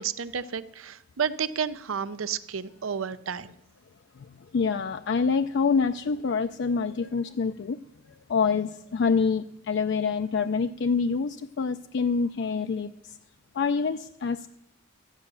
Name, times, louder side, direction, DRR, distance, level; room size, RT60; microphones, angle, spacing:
voice 1, 0.0-3.5, right 7 dB, 85° right, 15 dB, 0.6 m, -31 dB
voice 2, 4.5-7.8 8.3-12.9 13.5-14.5, left 5 dB, 60° left, 8 dB, 0.4 m, -26 dB
14.0 x 9.8 x 6.9 m, 0.87 s
head